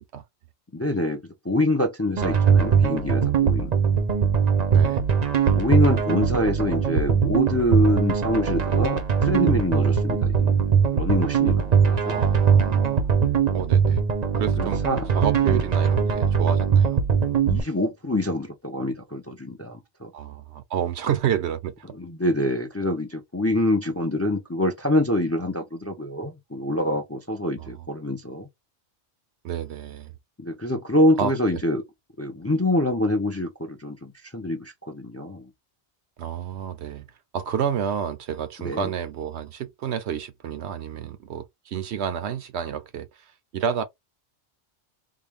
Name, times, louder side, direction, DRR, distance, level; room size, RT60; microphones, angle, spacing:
voice 1, 0.7-3.7 5.6-10.6 10.9-12.2 14.6-15.1 15.4-15.5 17.4-20.1 22.0-28.5 30.4-31.8 32.2-35.5 38.6-38.9, left 1 dB, 20° left, 0.4 m, -25 dB
sound 1, 2.2-17.6, right 7 dB, 40° right, 0.7 m, -21 dB
voice 2, 4.7-5.0 12.0-13.1 13.5-14.0 14.4-14.8 15.1-17.0 20.1-21.9 27.6-27.9 29.4-30.1 31.2-31.3 36.2-37.1 37.3-43.8, right 8 dB, 75° right, 0.9 m, -30 dB
3.8 x 2.3 x 3.4 m
omnidirectional pair, 1.2 m